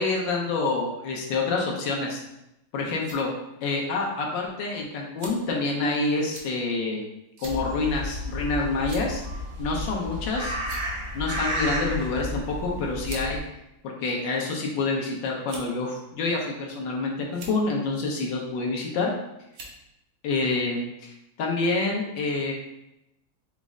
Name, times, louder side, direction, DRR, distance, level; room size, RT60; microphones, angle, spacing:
voice 1, 0.0-2.2 2.7-3.3 3.6-7.0 7.4-9.2 9.6-10.6 11.1-13.4 14.0-19.1 20.2-22.5, left 3 dB, 75° left, -1 dB, 1.4 m, -27 dB
sound 1, 2.6-3.2 4.0-4.1 5.2-5.5 6.3-6.5 7.4-7.6 8.0-8.1 8.8-9.2 10.1-10.3 10.6-11.1 12.2-12.3 13.0-13.3 14.1-14.7 15.4-15.8 16.6-16.9 17.3-17.6 18.8-19.1 19.5-19.8, right 2 dB, 60° right, 1.0 m, -42 dB
sound 2, 7.4-13.4, equal, 85° right, 1.9 m, -32 dB
5.0 x 2.1 x 3.6 m, 0.88 s
omnidirectional pair, 2.1 m